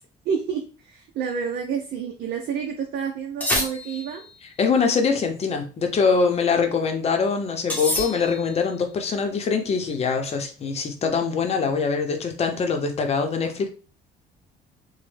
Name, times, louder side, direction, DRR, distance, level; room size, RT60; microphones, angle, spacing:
voice 1, 0.2-4.2, right 7 dB, 70° right, 0.5 m, -29 dB
sound 1, 3.4-4.3 7.7-8.6, left 1 dB, 10° left, 0.9 m, -27 dB
voice 2, 4.6-13.7, left 5 dB, 40° left, 0.7 m, -23 dB
3.1 x 2.1 x 3.2 m
cardioid pair, 110°, 17 cm